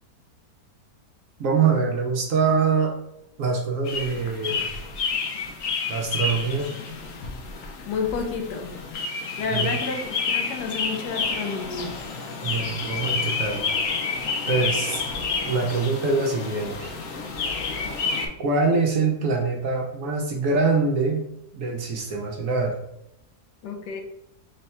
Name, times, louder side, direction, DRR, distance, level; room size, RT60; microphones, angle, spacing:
voice 1, 1.4-2.9 3.4-4.7 5.9-6.8 9.5-9.8 12.4-13.7 14.5-15.0 15.5-16.9 18.4-21.2 21.5-22.8, right 4 dB, 65° right, 0 dB, 0.9 m, -24 dB
sound 1, 3.9-18.3, left 4 dB, 65° left, 0.9 m, -29 dB
voice 2, 7.9-8.8 9.4-11.9 23.6-24.0, left 5 dB, 85° left, 3 dB, 1.3 m, -30 dB
3.7 x 2.2 x 4.1 m, 0.83 s
omnidirectional pair, 1.7 m